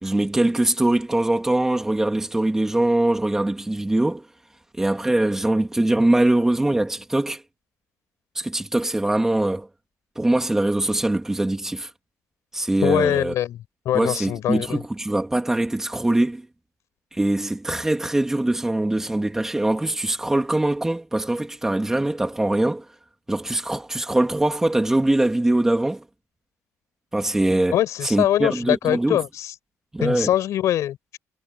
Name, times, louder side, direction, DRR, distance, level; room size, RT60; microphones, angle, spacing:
voice 1, 0.0-4.2 4.7-7.4 8.3-9.7 10.2-11.9 12.5-13.3 13.9-16.5 17.1-22.8 23.3-26.0 27.1-27.8 28.0-29.2 29.9-30.3, right 1 dB, 10° right, 2.7 m, -22 dB
voice 2, 12.8-13.6 13.9-14.8 27.7-29.5 30.0-31.2, left 12 dB, 60° left, 7.2 m, -23 dB
cardioid pair, 150°, 6 cm